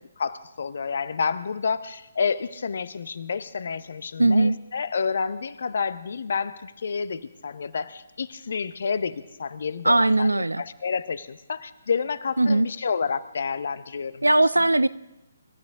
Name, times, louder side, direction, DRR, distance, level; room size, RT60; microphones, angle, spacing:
voice 1, 0.2-14.3, left 5 dB, 55° left, 0.8 m, -29 dB
voice 2, 4.2-4.6 9.8-10.6 12.4-12.7 14.2-14.9, right 2 dB, 85° right, 0.5 m, -19 dB
25.5 x 12.5 x 3.7 m
figure-of-eight pair, 140°, 0 cm